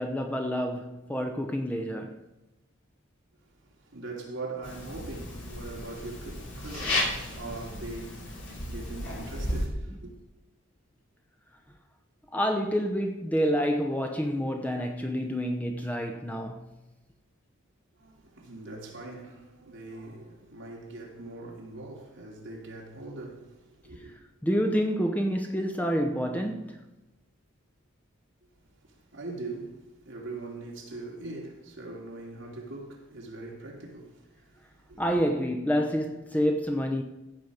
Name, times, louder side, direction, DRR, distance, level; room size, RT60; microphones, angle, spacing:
voice 1, 0.0-2.2 12.3-16.7 24.4-26.9 35.0-37.0, equal, 5° left, 0.7 m, -28 dB
voice 2, 3.5-10.1 18.0-24.1 28.8-35.2, right 2 dB, 60° right, 3.0 m, -42 dB
sound 1, 4.6-9.7, left 1 dB, 55° left, 3.1 m, -34 dB
15.0 x 6.4 x 5.2 m
head